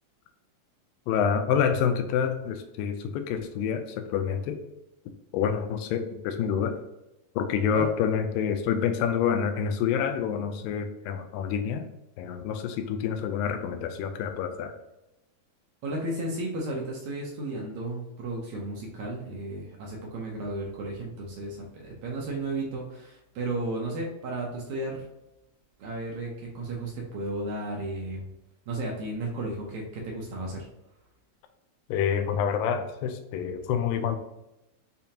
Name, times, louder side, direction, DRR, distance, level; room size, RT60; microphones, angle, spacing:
voice 1, 1.1-4.6 5.3-6.8 7.4-11.9 12.2-14.7 31.9-34.2, left 7 dB, 85° left, 8 dB, 2.2 m, -27 dB
voice 2, 15.8-25.1 25.8-28.3 28.7-30.7, right 2 dB, 70° right, -1 dB, 1.8 m, -34 dB
6.9 x 2.8 x 2.8 m, 0.92 s
omnidirectional pair, 4.0 m